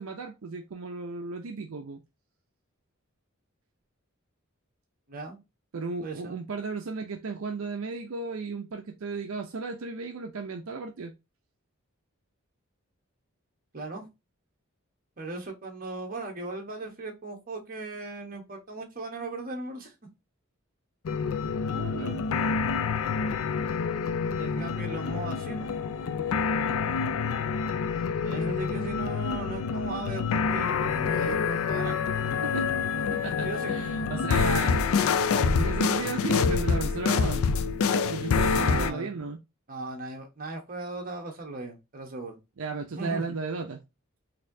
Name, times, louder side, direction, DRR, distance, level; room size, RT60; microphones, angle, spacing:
voice 1, 0.0-2.0 5.7-11.1 21.7-22.3 32.4-32.7 33.1-34.8 35.3-37.5 38.1-39.4 42.6-43.8, right 4 dB, 70° right, 0.5 m, -35 dB
voice 2, 5.1-5.4 6.0-6.4 13.7-14.1 15.2-19.9 24.4-25.7 26.8-27.1 28.2-32.0 32.9-33.1 33.4-33.7 34.4-34.5 38.4-39.1 39.7-42.4 42.9-43.3, right 2 dB, 40° right, 1.0 m, -37 dB
sound 1, 21.1-38.9, left 5 dB, 70° left, 0.4 m, -27 dB
4.2 x 2.7 x 2.6 m
head